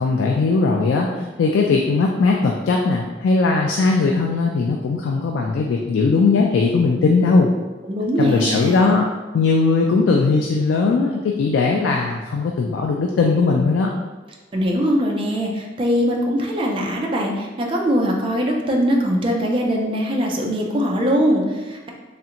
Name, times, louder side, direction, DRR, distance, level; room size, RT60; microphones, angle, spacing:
voice 1, 0.0-7.5 8.2-9.1 9.3-13.9, left 4 dB, 90° left, 0 dB, 0.3 m, -19 dB
voice 2, 7.8-9.0 14.5-21.9, equal, 30° right, 0 dB, 0.4 m, -21 dB
3.2 x 2.5 x 2.8 m, 1.3 s
head